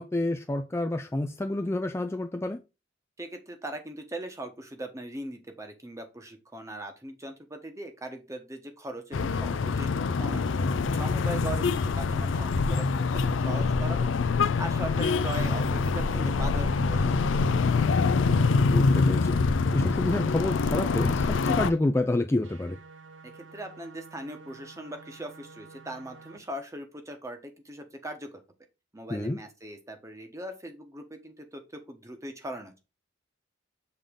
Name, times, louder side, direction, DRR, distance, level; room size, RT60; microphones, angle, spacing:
voice 1, 0.0-2.6 18.7-19.4 19.7-22.8 29.1-29.4, left 2 dB, 15° left, 0.4 m, -29 dB
voice 2, 3.2-10.6 10.9-14.1 14.6-17.8 23.2-28.3 28.9-32.8, right 1 dB, 15° right, 1.1 m, -40 dB
sound 1, 9.1-21.7, left 4 dB, 90° left, 0.4 m, -25 dB
sound 2, 22.4-26.4, right 4 dB, 85° right, 0.7 m, -50 dB
7.0 x 3.7 x 3.6 m
head